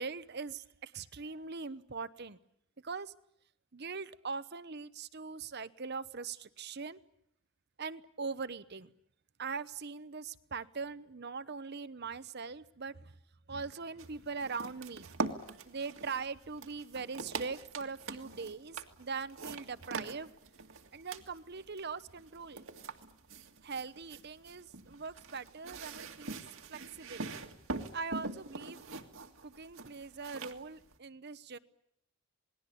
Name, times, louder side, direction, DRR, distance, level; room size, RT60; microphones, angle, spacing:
voice 1, 0.0-2.4 2.8-3.1 3.7-7.0 7.8-8.9 9.4-13.1 13.5-15.2 15.6-20.3 20.9-22.6 23.6-26.4 26.7-27.3 27.9-28.8 29.4-31.6, right 4 dB, 50° right, 15 dB, 0.9 m, -41 dB
sound 1, 14.0-31.0, right 3 dB, 70° right, 2.0 m, -44 dB
28.0 x 20.0 x 8.5 m, 0.77 s
head